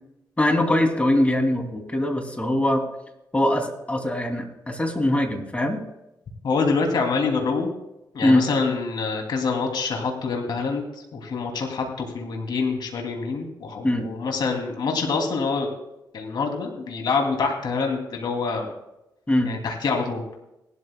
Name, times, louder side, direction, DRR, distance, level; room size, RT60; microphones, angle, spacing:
voice 1, 0.4-2.8 3.3-5.8 8.2-8.5 13.8-14.1 19.3-19.5, left 1 dB, 15° left, 3 dB, 2.6 m, -22 dB
voice 2, 6.4-7.7 8.1-10.8 11.1-15.7 16.1-18.7 19.4-20.2, left 4 dB, 70° left, 2 dB, 2.6 m, -26 dB
18.5 x 12.5 x 2.2 m, 0.89 s
cardioid pair, 70°, 8 cm